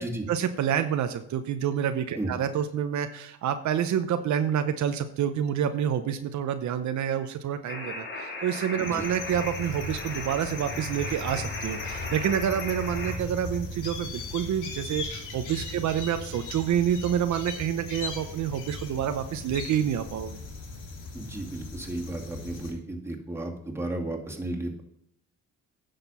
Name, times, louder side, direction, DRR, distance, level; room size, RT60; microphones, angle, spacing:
voice 1, 0.3-20.4, right 9 dB, 70° right, 8 dB, 0.8 m, -28 dB
sound 1, 7.7-13.2, left 2 dB, 40° left, 2.5 m, -37 dB
sound 2, 8.8-22.7, left 2 dB, 80° left, 2.4 m, -38 dB
voice 2, 21.1-24.8, right 1 dB, 10° right, 0 dB, 2.3 m, -34 dB
9.9 x 6.7 x 5.5 m, 0.74 s
cardioid pair, 90°, 30 cm